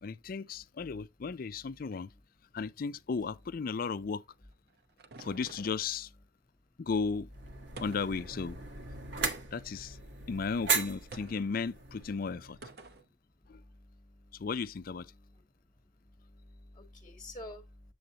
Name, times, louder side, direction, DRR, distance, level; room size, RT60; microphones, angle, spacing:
voice 1, 0.0-2.1 2.5-4.2 5.2-6.1 6.8-7.3 7.8-8.6 9.5-10.0 10.3-12.6 13.5-13.6 14.4-15.1, left 5 dB, 50° left, 0.4 m, -35 dB
sound 1, 4.3-5.9 7.8-8.2 9.2-9.8 11.1-11.5 12.6-13.1, right 3 dB, 60° right, 0.9 m, -49 dB
sound 2, 7.3-12.7, right 5 dB, 80° right, 1.4 m, -37 dB
voice 2, 13.5-14.5 15.1-15.4 16.0-17.9, left 1 dB, 25° left, 1.1 m, -50 dB
7.7 x 7.5 x 2.8 m
head